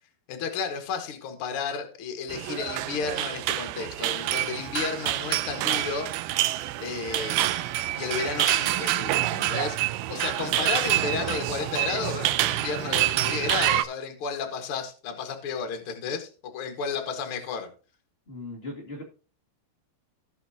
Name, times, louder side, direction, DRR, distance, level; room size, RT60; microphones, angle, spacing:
voice 1, 0.3-6.1 6.8-9.8 10.1-17.7, left 6 dB, 55° left, 6 dB, 1.5 m, -32 dB
sound 1, 2.3-13.8, right 15 dB, 90° right, 2.1 m, -27 dB
voice 2, 18.3-19.0, left 2 dB, 85° left, -3 dB, 0.5 m, -38 dB
17.0 x 5.9 x 2.8 m, 0.37 s
omnidirectional pair, 4.9 m